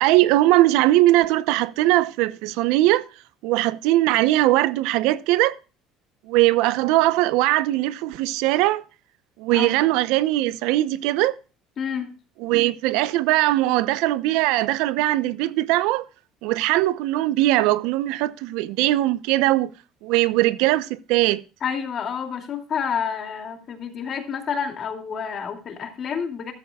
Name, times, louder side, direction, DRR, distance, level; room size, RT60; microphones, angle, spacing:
voice 1, 0.0-3.1 3.4-5.6 6.3-8.8 9.4-11.4 12.4-16.0 16.4-19.7 20.0-21.4, right 16 dB, 80° right, 0.7 m, -20 dB
voice 2, 9.5-9.9 11.8-12.1 21.6-26.5, left 7 dB, 35° left, 2.5 m, -29 dB
14.0 x 12.5 x 2.3 m
cardioid pair, 160°, 0 cm